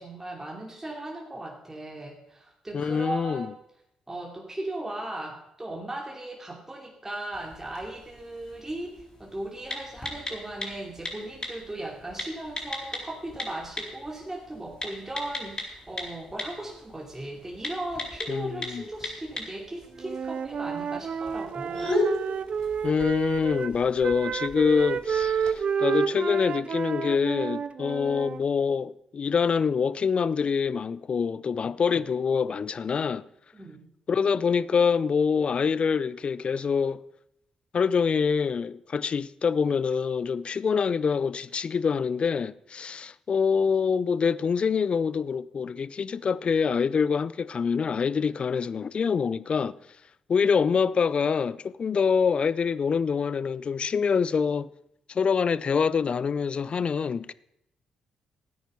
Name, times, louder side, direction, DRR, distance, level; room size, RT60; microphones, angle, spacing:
voice 1, 0.0-3.6 4.1-21.9 33.5-33.8, right 1 dB, 20° right, 2.7 m, -37 dB
voice 2, 2.7-3.5 18.3-18.8 22.8-33.2 34.1-37.0 37.7-49.8 50.3-54.7 55.1-57.3, left 6 dB, 50° left, 0.5 m, -25 dB
sound 1, 7.3-25.6, left 1 dB, 30° left, 4.2 m, -37 dB
Wind instrument woodwind instrument, 20.0-23.7 24.0-28.4, right 7 dB, 55° right, 0.6 m, -30 dB
13.5 x 9.2 x 5.4 m
hypercardioid pair, 45°, 2 cm